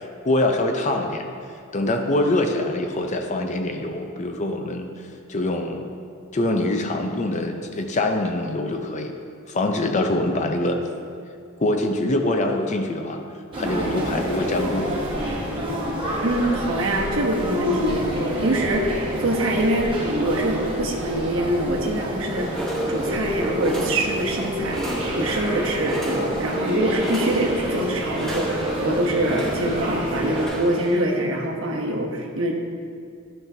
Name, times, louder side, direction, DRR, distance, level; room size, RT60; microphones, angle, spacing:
voice 1, 0.2-1.3 1.7-4.9 5.3-5.9 6.3-9.1 9.5-10.8 11.6-13.2 13.6-15.0, left 1 dB, 35° left, 4 dB, 0.6 m, -24 dB
sound 1, 13.5-30.5, equal, 25° right, 1.4 m, -28 dB
voice 2, 16.2-22.6 22.9-24.8 25.1-32.6, right 1 dB, 75° right, 0 dB, 0.9 m, -24 dB
sound 2, 22.3-31.0, equal, 5° left, 1.1 m, -32 dB
11.0 x 5.9 x 2.7 m, 2.4 s
head